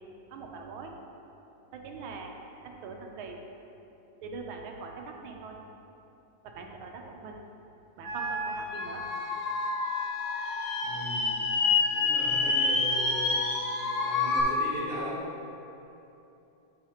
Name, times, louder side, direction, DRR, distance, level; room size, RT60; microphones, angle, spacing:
voice 1, 0.3-0.9 1.7-2.3 2.6-3.4 4.2-4.9 5.2-5.6 6.5-7.4 8.0-9.0, right 4 dB, 85° right, 2 dB, 1.5 m, -42 dB
Wind instrument woodwind instrument, 8.0-14.6, left 2 dB, 50° right, 0.5 m, -37 dB
sound 1, 8.8-14.4, left 4 dB, 85° left, 1.7 m, -28 dB
voice 2, 10.8-11.4 11.9-13.6 14.0-15.3, right 1 dB, 30° left, -9 dB, 1.1 m, -38 dB
8.7 x 5.6 x 2.9 m, 2.9 s
omnidirectional pair, 2.2 m